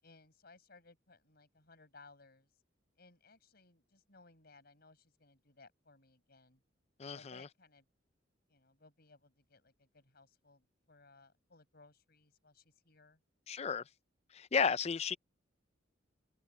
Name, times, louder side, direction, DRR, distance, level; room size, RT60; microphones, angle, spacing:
voice 1, 0.0-2.5 3.0-6.6 7.1-7.9 8.5-13.2, left 3 dB, 55° left, 5.5 m, -62 dB
voice 2, 7.0-7.4 13.5-13.8 14.3-15.2, left 6 dB, 35° left, 0.5 m, -33 dB
open air
head